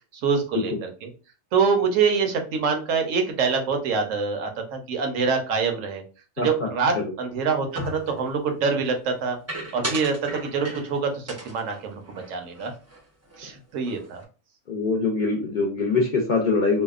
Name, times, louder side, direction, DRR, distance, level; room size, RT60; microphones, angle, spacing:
voice 1, 0.2-1.1 1.5-6.0 6.4-9.4 9.7-12.0 12.3-12.7 13.4-14.2, right 5 dB, 80° right, 4 dB, 1.0 m, -25 dB
voice 2, 6.4-6.7 14.7-16.8, left 4 dB, 60° left, -2 dB, 0.5 m, -23 dB
sound 1, 7.7-8.3 9.5-11.0 11.3-13.0 13.3-13.5 13.8-14.2, right 1 dB, 25° right, 0.3 m, -35 dB
2.7 x 2.0 x 2.3 m, 0.35 s
omnidirectional pair, 1.3 m